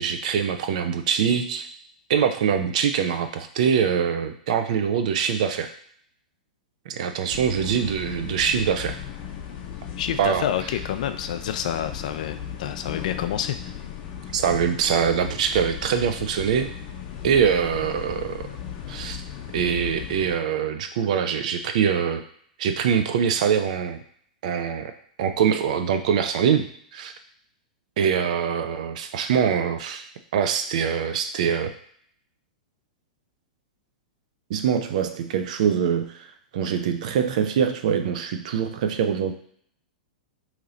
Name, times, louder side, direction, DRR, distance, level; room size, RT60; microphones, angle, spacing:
voice 1, 0.0-1.7 2.1-5.7 6.9-9.0 10.2-10.4 14.3-16.7 17.2-18.5 18.9-19.2 19.5-22.2 22.6-24.0 24.4-24.9 25.2-27.1 28.0-30.1 30.3-31.7 34.5-36.3 36.5-39.3, right 7 dB, 60° right, 8 dB, 0.5 m, -23 dB
sound 1, 7.3-20.4, left 8 dB, 40° left, 0.7 m, -36 dB
voice 2, 10.0-13.8, left 10 dB, 65° left, 9 dB, 0.4 m, -28 dB
3.0 x 2.8 x 3.8 m, 0.62 s
hypercardioid pair, 110°, 4 cm